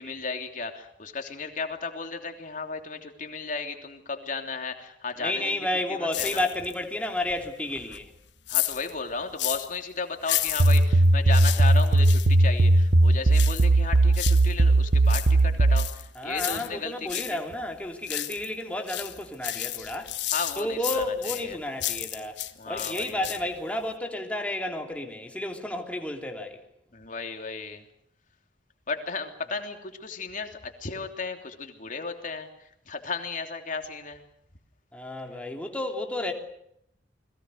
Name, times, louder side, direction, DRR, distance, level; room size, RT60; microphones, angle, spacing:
voice 1, 0.0-6.4 8.5-17.4 19.7-19.9 20.3-21.6 22.6-23.4 26.9-27.9 28.9-34.2, left 4 dB, 45° left, 3.2 m, -35 dB
voice 2, 5.2-8.1 16.1-20.1 20.6-26.6 34.9-36.3, left 1 dB, 5° left, 3.2 m, -31 dB
sound 1, 6.1-6.8 7.2-9.8 10.2-12.3 13.3-14.5 14.9-17.4 17.7-18.6 18.9-22.5 22.8-23.6 23.9-24.0, left 14 dB, 70° left, 1.4 m, -33 dB
sound 2, 10.6-15.9, right 2 dB, 75° right, 1.1 m, -18 dB
29.5 x 21.5 x 6.6 m
head